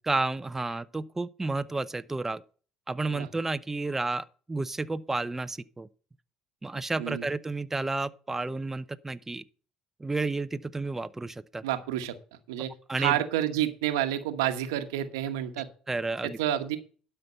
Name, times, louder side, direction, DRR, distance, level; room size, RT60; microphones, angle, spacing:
voice 1, 0.0-2.4 2.9-5.9 6.6-9.4 10.0-11.6 12.9-13.3 15.9-16.4, right 3 dB, 15° right, 0.7 m, -31 dB
voice 2, 11.6-12.1 12.5-12.7 13.0-15.7 16.2-16.8, right 12 dB, 85° right, 1.1 m, -29 dB
12.0 x 5.7 x 5.5 m
hypercardioid pair, 65°, 2 cm